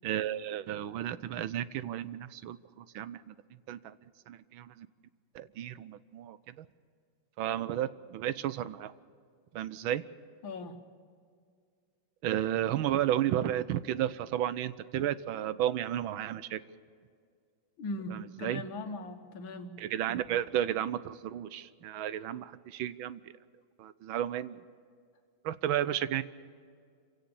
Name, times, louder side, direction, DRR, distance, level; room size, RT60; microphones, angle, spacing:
voice 1, 0.0-3.3 3.7-4.0 4.3-4.9 5.3-6.7 7.4-8.9 9.5-10.0 12.2-16.6 18.1-18.6 19.8-23.3 23.8-24.6 25.4-26.2, right 11 dB, 85° right, 15 dB, 1.5 m, -33 dB
voice 2, 10.4-10.8 17.8-19.7, left 2 dB, 75° left, 6 dB, 2.2 m, -39 dB
26.5 x 17.0 x 7.0 m, 2.1 s
omnidirectional pair, 2.2 m